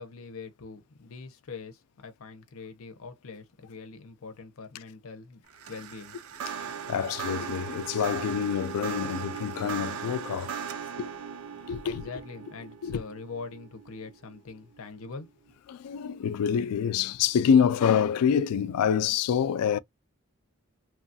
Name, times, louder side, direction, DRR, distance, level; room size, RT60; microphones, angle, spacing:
voice 1, 0.0-5.4 5.7-6.2 11.8-15.3, left 4 dB, 70° left, 0.7 m, -43 dB
sound 1, 5.5-14.8, right 7 dB, 70° right, 0.5 m, -38 dB
voice 2, 6.6-10.5 11.0-11.1 11.7-12.0 12.8-13.0 15.7-19.8, left 7 dB, 90° left, 0.3 m, -26 dB
3.0 x 2.3 x 2.6 m
head